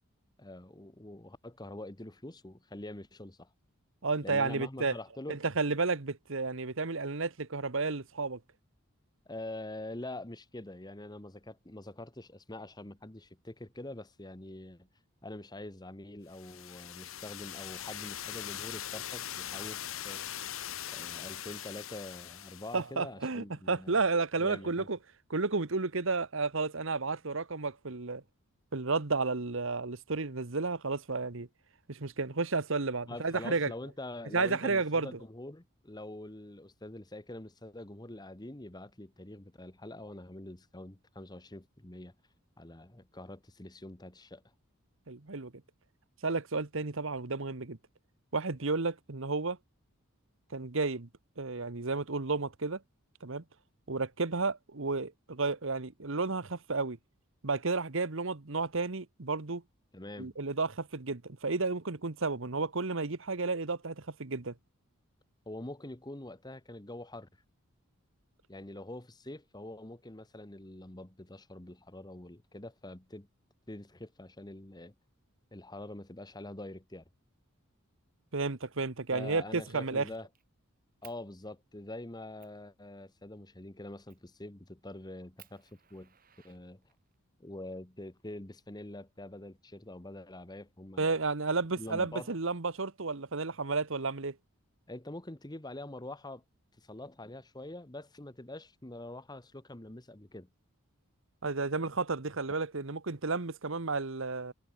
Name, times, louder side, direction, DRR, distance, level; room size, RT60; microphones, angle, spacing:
voice 1, 0.4-3.5 4.2-5.4 9.3-14.9 15.2-20.4 20.9-24.0 24.4-24.9 33.1-42.1 42.6-44.4 59.9-60.3 65.5-67.3 68.5-73.3 73.7-74.9 75.5-77.0 79.1-80.3 81.0-86.1 86.4-86.8 87.4-91.1 91.8-92.3 94.9-96.4 96.8-100.5, left 1 dB, 20° left, 1.3 m, -45 dB
voice 2, 4.0-4.9 5.3-8.4 22.7-25.0 25.3-28.2 28.7-31.5 31.9-33.7 34.3-35.1 45.1-45.5 46.2-47.8 48.3-49.6 50.5-51.1 51.4-52.8 53.2-53.4 53.9-57.0 57.4-59.6 60.2-64.5 78.3-80.0 91.0-94.4 101.4-104.5, right 3 dB, 60° right, 1.2 m, -32 dB
sound 1, 16.3-22.8, left 10 dB, 65° left, 1.7 m, -41 dB
Fire, 78.8-79.1 79.5-80.4 81.0-81.2 81.8-81.9 82.4-82.6 84.1-84.4 84.8-84.9 85.4-87.2 88.2-89.2, right 12 dB, 40° right, 4.1 m, -60 dB
head